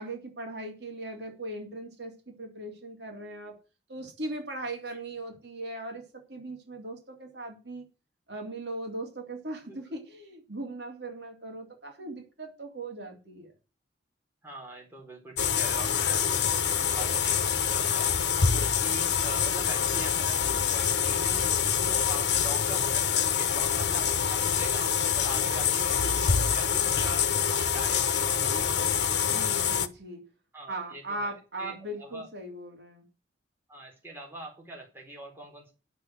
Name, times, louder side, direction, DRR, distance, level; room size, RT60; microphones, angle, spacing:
voice 1, 0.0-3.6 3.9-7.8 8.3-13.5 29.2-30.2 30.7-33.0, right 2 dB, 70° right, 2 dB, 3.4 m, -39 dB
voice 2, 14.4-18.1 18.5-24.8 25.1-27.3 27.7-28.9 30.5-31.3 31.6-32.3 33.7-35.7, right 1 dB, 15° right, 0 dB, 4.1 m, -43 dB
sound 1, 15.4-29.9, left 7 dB, 70° left, 1.1 m, -26 dB
10.5 x 6.4 x 9.0 m, 0.33 s
head